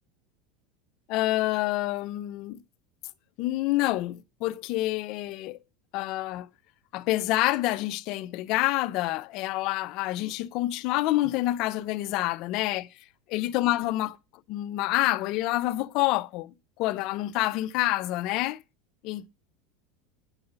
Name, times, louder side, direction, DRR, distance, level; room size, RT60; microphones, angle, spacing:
voice 1, 1.1-2.6 3.4-5.6 5.9-6.5 6.9-12.9 13.3-14.2 14.5-18.6 19.0-19.3, left 17 dB, 55° left, 0.8 m, -27 dB
9.9 x 5.5 x 8.0 m
supercardioid pair, 130°, 0 cm